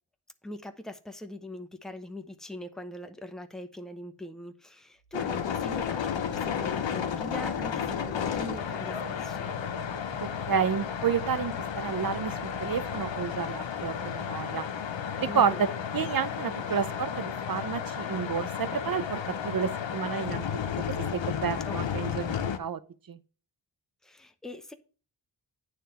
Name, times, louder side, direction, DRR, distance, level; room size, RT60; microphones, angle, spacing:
voice 1, 0.4-9.5 15.2-15.6 16.6-16.8 21.6-22.1 24.0-24.7, left 1 dB, ahead, 0.8 m, -42 dB
sound 1, 5.0-17.0, right 3 dB, 80° right, 1.3 m, -49 dB
sound 2, 5.1-22.6, left 8 dB, 80° left, 0.8 m, -33 dB
voice 2, 10.2-14.7 15.2-15.7 15.9-20.5 21.1-22.8 23.1-23.2, right 7 dB, 50° right, 0.7 m, -30 dB
9.1 x 3.3 x 5.5 m
cardioid pair, 55°, 44 cm